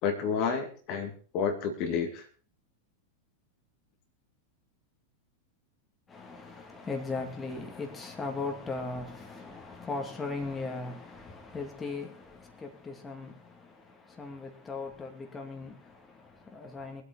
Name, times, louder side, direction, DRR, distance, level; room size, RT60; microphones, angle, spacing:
voice 1, 0.0-2.2, left 6 dB, 40° left, 2.4 m, -30 dB
voice 2, 6.1-17.0, left 3 dB, 15° left, 2.4 m, -38 dB
23.5 x 8.5 x 4.0 m
figure-of-eight pair, 90°, 0 cm